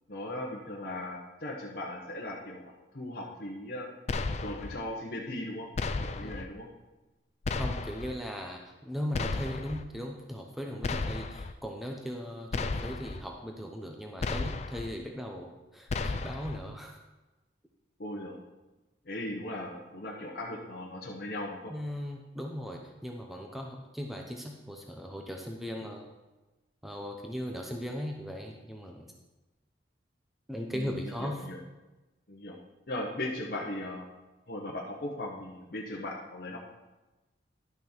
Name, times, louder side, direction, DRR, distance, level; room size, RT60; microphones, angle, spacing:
voice 1, 0.1-3.9 4.4-5.7 6.0-6.7 18.0-18.4 19.0-21.7 30.7-31.6 32.3-32.6 32.9-34.1 34.5-36.6, left 1 dB, 55° left, -3 dB, 1.0 m, -38 dB
sound 1, 4.1-4.8 5.8-6.5 7.4-8.1 9.1-9.8 10.8-11.5 12.5-13.2 14.2-14.9 15.9-16.6, left 3 dB, 35° left, 0.4 m, -33 dB
voice 2, 7.5-17.0 21.7-26.1 26.8-29.1 30.5-31.4, equal, ahead, 1 dB, 0.7 m, -38 dB
11.0 x 6.1 x 4.4 m, 1.1 s
head